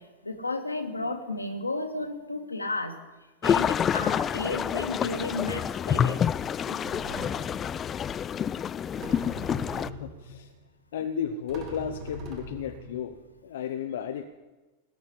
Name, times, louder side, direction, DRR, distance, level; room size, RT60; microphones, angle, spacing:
voice 1, 0.2-2.9 3.4-6.2 6.7-6.8, left 2 dB, 80° left, 5 dB, 1.7 m, -33 dB
sound 1, 3.4-9.9, left 8 dB, 25° left, 0.4 m, -28 dB
sound 2, 5.4-5.8 6.5-6.6 6.8-7.7 9.0-10.4 11.0-11.1 11.5-13.4, right 1 dB, 40° right, 4.3 m, -42 dB
voice 2, 9.8-10.5 10.9-14.3, left 8 dB, 60° left, 8 dB, 0.8 m, -34 dB
20.0 x 7.3 x 8.5 m, 1.2 s
figure-of-eight pair, 90°, 0 cm